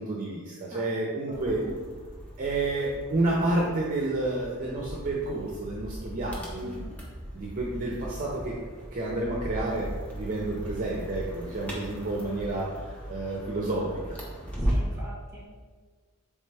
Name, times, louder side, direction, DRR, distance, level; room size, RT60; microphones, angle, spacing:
voice 1, 0.0-1.6 2.4-6.8 7.3-8.6 8.9-12.7 13.1-14.2, right 2 dB, 40° right, -2 dB, 0.5 m, -30 dB
voice 2, 0.7-1.1 1.5-1.7 6.6-6.9 14.6-15.7, right 1 dB, 15° right, -6 dB, 1.4 m, -43 dB
sound 1, 1.3-15.0, equal, 5° left, 0.7 m, -37 dB
4.3 x 3.3 x 3.3 m, 1.5 s
head